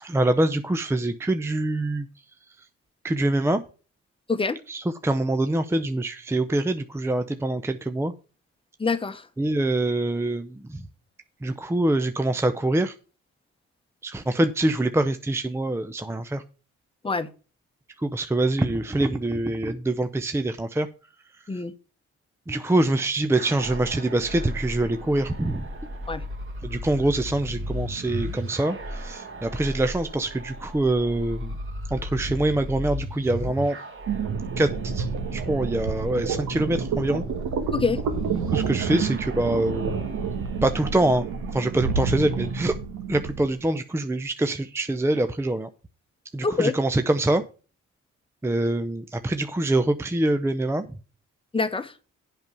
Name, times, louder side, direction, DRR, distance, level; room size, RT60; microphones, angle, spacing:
voice 1, 0.0-2.1 3.0-3.6 4.7-8.1 9.4-10.8 11.4-12.9 14.0-16.4 18.0-20.9 22.5-25.7 26.6-31.5 31.9-33.8 34.6-37.2 38.5-40.0 40.6-41.2 41.5-42.7 43.1-45.7 46.3-47.4 48.4-50.9, right 1 dB, 10° right, 0.6 m, -25 dB
voice 2, 8.8-9.3 17.0-17.3 21.5-21.7 26.1-26.2 37.7-38.0 46.4-46.7 51.5-51.9, left 4 dB, 20° left, 1.0 m, -25 dB
sound 1, 23.3-42.8, equal, 45° right, 2.2 m, -37 dB
sound 2, 34.1-43.5, right 5 dB, 75° right, 1.7 m, -29 dB
7.9 x 5.4 x 7.0 m
cardioid pair, 90°, 30 cm